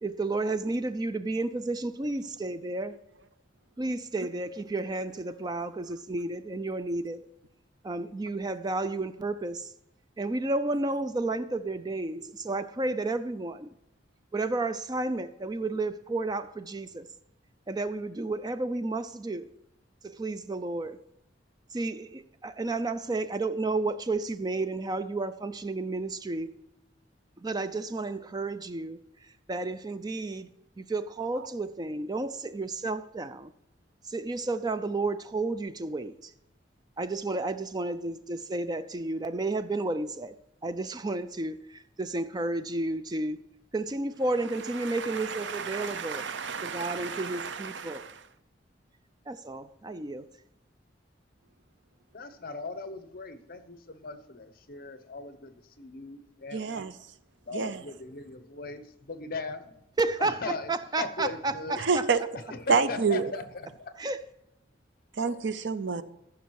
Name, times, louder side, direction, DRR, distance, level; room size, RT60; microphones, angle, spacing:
voice 1, 0.0-3.0 3.8-7.3 7.8-9.7 10.2-13.7 14.3-17.1 17.7-19.5 20.0-21.0 21.7-26.6 27.4-29.0 29.5-30.5 30.8-33.5 34.0-36.3 37.0-40.4 40.6-43.4 43.7-46.3 46.6-48.0 49.3-50.3 60.0-62.1 64.0-64.2, right 2 dB, 20° right, 0.4 m, -32 dB
voice 2, 44.9-48.1 56.5-56.9 57.5-57.8 61.8-62.2 62.7-63.3 65.2-66.0, right 5 dB, 70° right, 0.7 m, -29 dB
voice 3, 52.1-56.9 57.5-59.7 60.2-60.7 61.0-61.8 62.5-63.9, left 3 dB, 50° left, 0.9 m, -39 dB
14.5 x 6.1 x 4.7 m
head